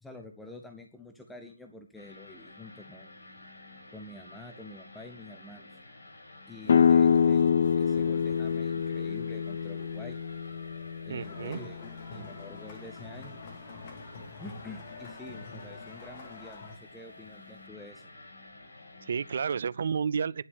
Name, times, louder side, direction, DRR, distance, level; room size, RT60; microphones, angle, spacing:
voice 1, 0.0-3.1 3.9-5.8 6.5-10.2 11.0-13.4 14.4-18.1, left 2 dB, 5° left, 0.7 m, -48 dB
sound 1, 2.0-19.4, left 2 dB, 60° left, 5.7 m, -51 dB
sound 2, 6.7-12.3, left 7 dB, 45° left, 0.5 m, -26 dB
voice 2, 11.1-11.6 19.0-20.4, right 6 dB, 45° right, 0.5 m, -31 dB
sound 3, 11.2-16.8, left 4 dB, 25° left, 2.1 m, -46 dB
10.5 x 6.9 x 8.3 m
figure-of-eight pair, 150°, 0 cm